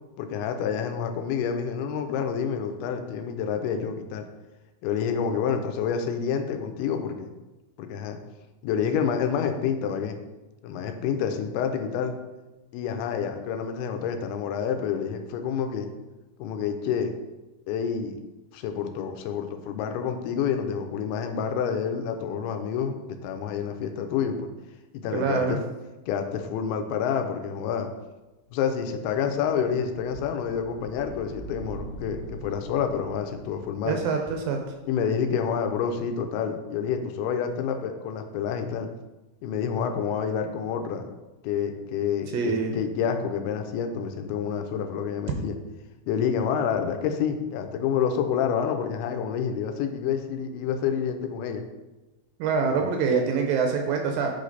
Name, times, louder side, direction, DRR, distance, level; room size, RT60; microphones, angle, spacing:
voice 1, 0.2-4.2 4.8-7.3 7.8-8.2 8.6-10.2 10.6-12.1 12.7-15.9 16.4-17.1 17.7-18.2 18.5-24.5 24.9-25.6 26.1-27.9 28.5-34.0 34.9-38.9 39.4-41.1 41.4-45.6 46.1-51.6 52.6-52.9, left 7 dB, 85° left, 6 dB, 2.5 m, -28 dB
voice 2, 25.1-25.6 33.9-34.6 42.3-42.7 52.4-54.3, right 5 dB, 80° right, 3 dB, 2.2 m, -25 dB
sound 1, 29.7-35.7, right 1 dB, 60° left, 1.7 m, -44 dB
8.5 x 3.2 x 3.9 m, 1.1 s
omnidirectional pair, 4.5 m